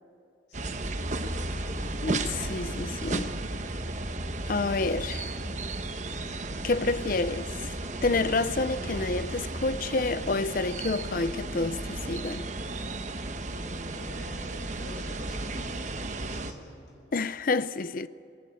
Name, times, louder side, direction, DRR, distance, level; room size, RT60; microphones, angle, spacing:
sound 1, 0.5-16.5, right 2 dB, 40° right, 1.1 m, -34 dB
voice 1, 1.3-2.0 13.5-17.0, equal, 70° left, 6.7 m, -47 dB
voice 2, 2.0-3.3 4.5-5.3 6.6-7.5 8.0-12.5 17.1-18.1, left 3 dB, 45° left, 0.6 m, -29 dB
21.0 x 19.5 x 9.2 m
head